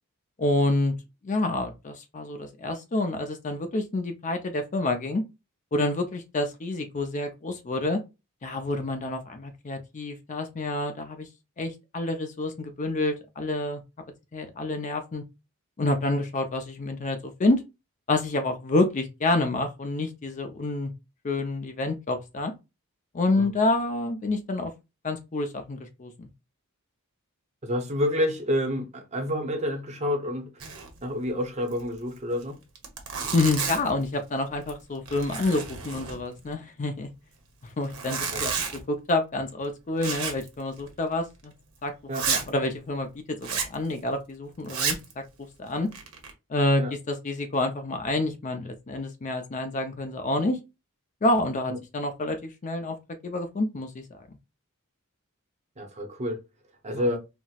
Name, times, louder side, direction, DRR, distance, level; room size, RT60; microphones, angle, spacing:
voice 1, 0.4-0.9 1.2-5.2 5.7-8.0 8.4-11.3 11.6-13.8 14.3-15.2 15.8-17.6 18.1-20.9 21.2-22.5 23.1-24.7 25.0-26.3 33.3-37.1 37.8-41.5 41.8-41.9 42.3-45.0 45.6-45.9 46.5-50.6 51.2-53.0 53.2-54.0 56.9-57.0, left 2 dB, 35° left, 0.5 m, -28 dB
voice 2, 27.6-30.7 31.0-32.6 38.3-38.4 42.1-42.3 46.8-46.9 51.7-51.8 55.8-56.4 56.8-57.2, left 1 dB, 30° right, 0.7 m, -29 dB
Zipper (clothing), 30.6-31.0 31.2-31.3 31.7-31.8 32.4-32.5 32.8-34.0 34.5-34.8 35.1-36.5 37.8-38.8 40.0-40.5 40.8-40.9 41.4-41.5 42.1-42.5 43.4-43.8 44.6-45.1 45.7-46.3, right 6 dB, 70° right, 0.9 m, -31 dB
4.2 x 2.0 x 2.3 m
head